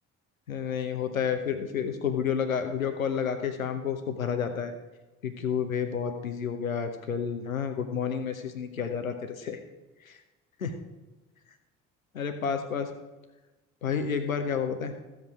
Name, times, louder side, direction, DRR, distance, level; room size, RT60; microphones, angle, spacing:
voice 1, 0.5-4.7 5.2-9.6 10.0-10.2 10.6-10.8 12.1-12.9 13.8-14.9, left 7 dB, 85° left, 7 dB, 0.9 m, -30 dB
14.5 x 7.8 x 4.6 m, 1.1 s
figure-of-eight pair, 50°, 40 cm